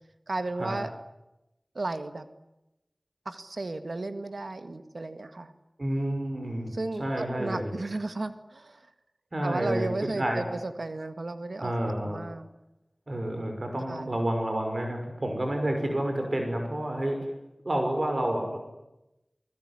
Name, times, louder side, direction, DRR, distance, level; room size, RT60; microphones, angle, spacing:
voice 1, 0.3-0.9 1.7-2.2 3.2-5.5 6.7-8.9 9.4-11.7 12.0-12.5 13.9-14.1, right 2 dB, 80° right, 9 dB, 1.7 m, -34 dB
voice 2, 5.8-6.7 7.0-7.7 9.3-9.9 10.2-10.4 11.6-12.2 13.1-17.2 17.6-18.6, right 1 dB, 55° right, 4 dB, 5.7 m, -29 dB
28.5 x 20.5 x 9.8 m, 0.94 s
wide cardioid pair, 50°, 0 cm